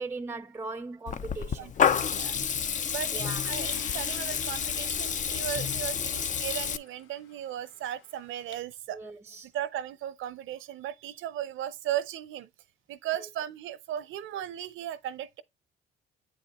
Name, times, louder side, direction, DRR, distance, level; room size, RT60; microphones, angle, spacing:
voice 1, 0.0-1.7 3.1-3.6 8.9-9.5 13.2-13.3, right 3 dB, 10° right, 0.5 m, -39 dB
Water tap faucet / Liquid, 1.1-6.8, left 7 dB, 40° left, 0.4 m, -29 dB
sound 1, 1.7-8.6, left 7 dB, 85° left, 0.8 m, -51 dB
voice 2, 2.0-2.4 2.9-9.0 9.5-12.5 12.9-15.4, right 11 dB, 80° right, 0.6 m, -36 dB
8.2 x 3.7 x 4.0 m
cardioid pair, 90°, 20 cm